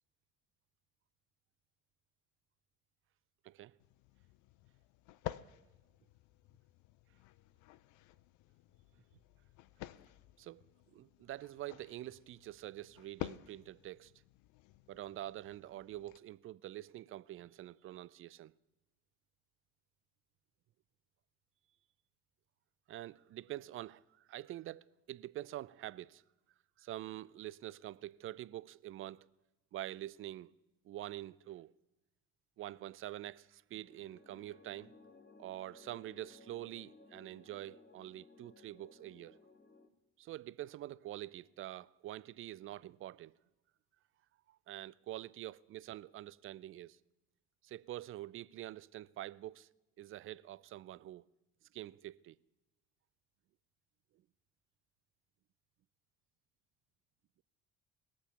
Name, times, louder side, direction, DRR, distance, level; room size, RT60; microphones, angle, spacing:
voice 1, 3.4-3.8 10.4-10.7 10.9-14.1 14.9-18.5 22.9-26.2 26.8-29.3 29.7-30.5 30.8-31.7 32.6-34.9 35.4-39.4 40.2-43.4 44.5-47.0 47.6-49.7 50.0-51.2 51.7-52.4, right 14 dB, 35° right, 0.4 m, -46 dB
sound 1, 3.8-16.2, left 15 dB, 55° left, 0.6 m, -51 dB
sound 2, 33.8-39.9, left 3 dB, 30° left, 1.4 m, -60 dB
20.0 x 7.0 x 5.7 m
hypercardioid pair, 60°, 36 cm